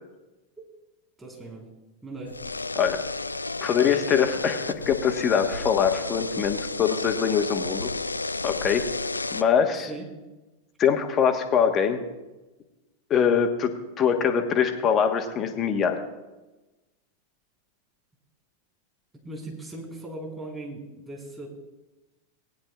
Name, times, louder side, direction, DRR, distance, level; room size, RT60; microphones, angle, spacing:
voice 1, 1.2-1.7 2.0-2.4 9.7-10.0 19.2-21.5, right 2 dB, 10° right, -1 dB, 4.2 m, -38 dB
sound 1, 2.3-9.4, left 3 dB, 80° left, 0.3 m, -32 dB
voice 2, 3.6-7.9 8.4-8.9 9.3-9.9 10.8-12.0 13.1-16.0, left 7 dB, 30° left, 5 dB, 1.2 m, -23 dB
19.5 x 10.0 x 2.4 m, 1.1 s
figure-of-eight pair, 90°, 0 cm